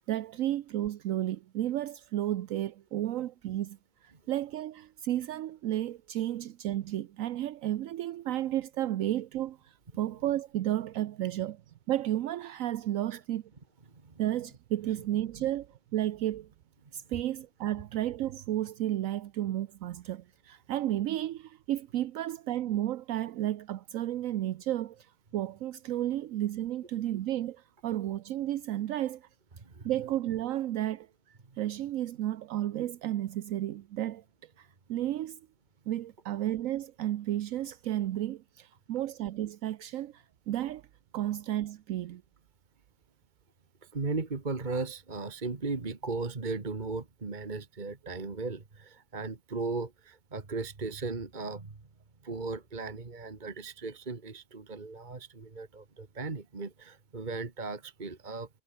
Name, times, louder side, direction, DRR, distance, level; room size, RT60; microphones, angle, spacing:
voice 1, 0.1-11.6 11.9-13.4 14.2-16.5 16.9-29.3 29.8-35.4 35.9-40.8 41.1-42.2, right 13 dB, 75° right, 1.0 m, -32 dB
voice 2, 13.9-14.2 29.6-29.9 43.8-51.7 52.2-58.5, right 3 dB, 35° right, 1.8 m, -37 dB
omnidirectional pair, 1.5 m